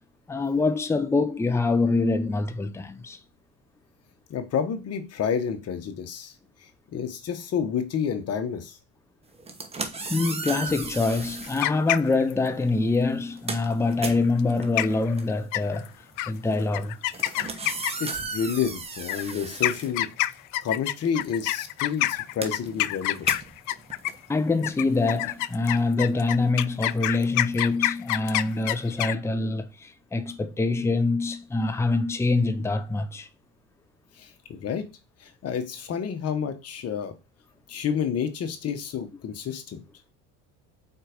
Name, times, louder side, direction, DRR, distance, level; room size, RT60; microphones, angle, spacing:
voice 1, 0.3-3.2 10.1-15.9 16.3-16.9 24.3-33.3, left 3 dB, 10° left, 0.7 m, -25 dB
voice 2, 4.3-6.3 6.9-8.8 18.0-20.1 20.6-23.3 34.2-34.8 35.4-37.1 37.7-39.8, left 7 dB, 45° left, 1.3 m, -29 dB
sound 1, 9.3-11.7 12.6-12.8 13.1-20.6 20.9-25.6, right 3 dB, 15° right, 1.1 m, -36 dB
sound 2, 11.4-12.5 14.4-14.5 14.8-15.1 15.5-15.9 16.2-16.3 16.7-18.2 19.0-24.3 24.6-29.1, left 16 dB, 60° left, 0.5 m, -27 dB
4.6 x 4.3 x 5.1 m
supercardioid pair, 95°, 34 cm